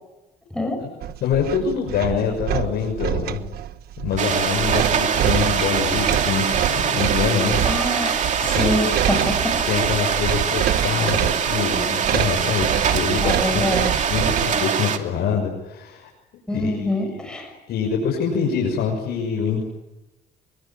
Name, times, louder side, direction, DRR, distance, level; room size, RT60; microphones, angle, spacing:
voice 1, 0.8-3.4 4.0-7.6 8.5-8.7 9.7-13.7 14.1-16.1 16.5-17.1 17.7-19.6, left 6 dB, 70° left, 0 dB, 6.3 m, -25 dB
sound 1, 1.0-14.6, right 12 dB, 65° right, 1.3 m, -26 dB
sound 2, 4.2-15.0, right 7 dB, 45° right, 2.6 m, -23 dB
voice 2, 7.6-9.6 10.0-10.1 13.2-14.0 16.5-17.5, left 1 dB, 5° left, 3 dB, 6.8 m, -25 dB
25.5 x 23.0 x 8.9 m, 1.0 s
cardioid pair, 110°, 17 cm